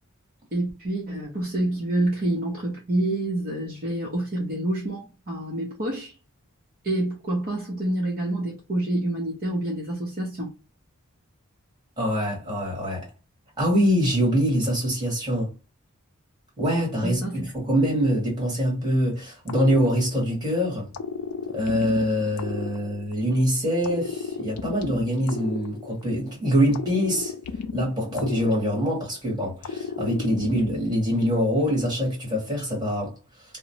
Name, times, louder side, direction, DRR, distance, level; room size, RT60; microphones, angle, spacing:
voice 1, 0.5-6.1 6.8-10.5 17.0-17.4, right 1 dB, 45° right, 0.7 m, -27 dB
voice 2, 12.0-13.1 13.6-15.5 16.6-17.2 17.5-20.9 21.5-27.3 27.7-33.1, equal, 20° right, 1.6 m, -24 dB
sound 1, 19.5-20.5 20.9-23.4 23.8-26.3 26.7-29.2 29.6-31.1, left 5 dB, 80° left, 0.4 m, -34 dB
2.9 x 2.1 x 2.7 m
head